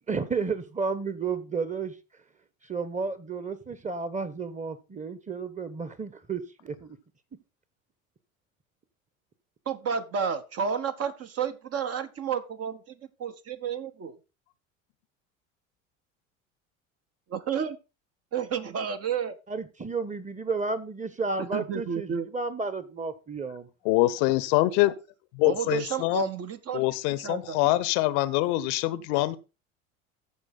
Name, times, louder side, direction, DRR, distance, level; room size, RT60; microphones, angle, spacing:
voice 1, 0.1-1.9 2.7-7.0 19.5-23.7, right 4 dB, 20° right, 1.4 m, -32 dB
voice 2, 9.7-12.9 13.2-14.1 17.3-17.8 18.3-19.4 21.4-22.3 25.5-26.8 27.2-27.7, right 7 dB, 35° right, 1.2 m, -31 dB
voice 3, 23.8-24.9 25.3-26.3 26.7-29.4, left 17 dB, 55° left, 0.8 m, -24 dB
14.0 x 5.0 x 4.1 m
figure-of-eight pair, 65°, 40 cm